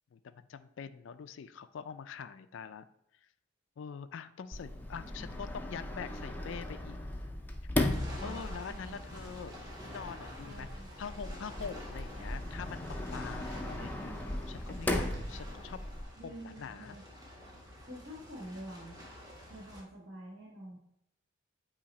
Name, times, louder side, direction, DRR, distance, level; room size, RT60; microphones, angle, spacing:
voice 1, 0.1-2.8 3.8-7.0 8.2-9.5 9.8-10.7 11.0-15.8 16.2-17.0, left 6 dB, 70° left, 12 dB, 0.4 m, -44 dB
Sliding door, 4.5-16.0, left 1 dB, 10° left, 0.4 m, -37 dB
sound 1, 7.9-19.8, left 1 dB, 20° right, 1.2 m, -49 dB
voice 2, 10.4-10.9 16.2-17.0 17.9-19.0 19.5-20.8, equal, 55° right, -6 dB, 1.4 m, -47 dB
8.4 x 2.8 x 4.1 m, 0.78 s
head